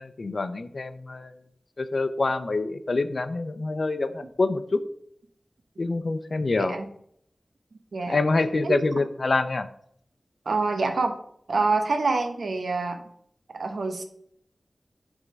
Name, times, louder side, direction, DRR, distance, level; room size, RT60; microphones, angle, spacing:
voice 1, 0.0-1.3 1.8-4.8 5.8-6.8 8.1-9.7, left 3 dB, 60° left, 10 dB, 0.6 m, -26 dB
voice 2, 10.5-11.1 11.5-13.0 13.5-14.0, right 3 dB, 85° right, 6 dB, 1.0 m, -26 dB
8.0 x 3.7 x 5.4 m, 0.66 s
wide cardioid pair, 65°, 0 cm